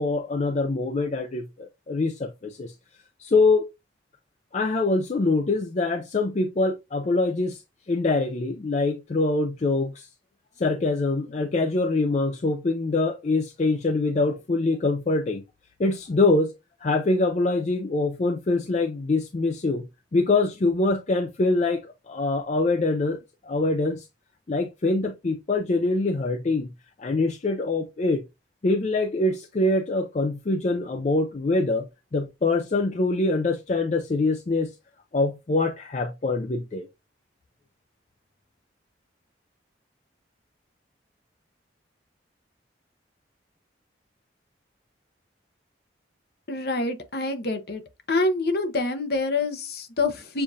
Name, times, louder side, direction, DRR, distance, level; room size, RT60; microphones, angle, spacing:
voice 1, 0.0-1.4 1.9-2.7 3.2-3.7 4.5-7.6 7.9-10.1 10.6-15.4 15.8-16.5 16.8-24.1 24.5-26.7 27.0-28.2 28.6-34.7 35.1-36.9, left 3 dB, 40° left, 0.4 m, -24 dB
voice 2, 46.5-47.8 48.1-50.4, left 3 dB, 55° left, 0.8 m, -26 dB
6.7 x 2.4 x 2.6 m
head